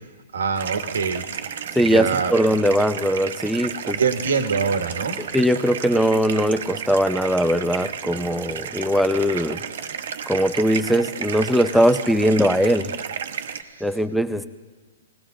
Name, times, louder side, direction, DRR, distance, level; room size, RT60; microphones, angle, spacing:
voice 1, 0.3-1.2 1.9-2.3 3.9-5.3, right 5 dB, 90° right, 8 dB, 1.3 m, -24 dB
sound 1, 0.5-13.6, right 7 dB, 70° right, 0.9 m, -32 dB
voice 2, 1.7-4.0 5.2-9.6 10.3-12.9 13.8-14.5, equal, ahead, 12 dB, 0.5 m, -20 dB
19.5 x 17.0 x 3.8 m, 1.4 s
hypercardioid pair, 145°, 0 cm